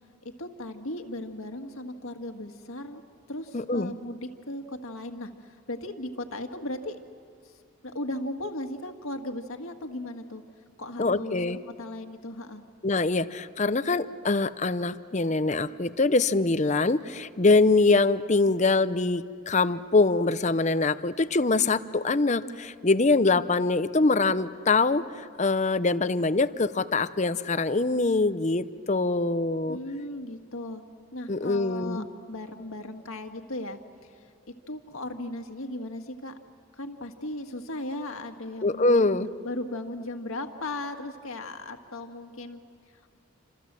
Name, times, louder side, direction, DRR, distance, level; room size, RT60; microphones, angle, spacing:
voice 1, 0.2-3.0 3.3-7.0 7.4-7.5 7.8-10.4 10.8-11.4 11.8-12.6 29.6-30.8 31.1-34.3 34.7-36.3 36.8-39.1 39.4-42.6, left 1 dB, 75° left, 5 dB, 1.9 m, -37 dB
voice 2, 3.5-3.9 11.0-11.6 12.8-25.0 25.4-29.8 31.3-32.1 38.6-39.3, left 3 dB, 35° left, 13 dB, 0.6 m, -24 dB
28.5 x 27.0 x 7.6 m, 2.3 s
head